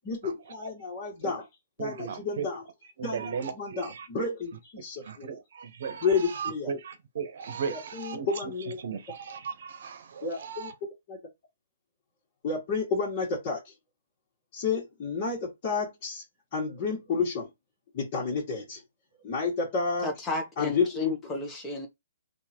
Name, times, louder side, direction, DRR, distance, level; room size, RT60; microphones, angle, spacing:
voice 1, 0.0-1.5 1.8-2.6 3.0-5.4 6.0-6.7 7.7-8.8 10.2-10.7 11.1-11.2 12.4-13.7 14.5-16.2 16.5-17.5 17.9-18.8 19.2-20.1 20.6-21.1, left 4 dB, 35° left, 2.0 m, -31 dB
voice 2, 1.8-2.5 3.0-4.3 5.1-8.3 8.8-10.7, right 6 dB, 60° right, 1.0 m, -36 dB
voice 3, 20.0-21.9, left 3 dB, 15° left, 1.3 m, -32 dB
3.7 x 2.8 x 4.5 m
hypercardioid pair, 150°, 0 cm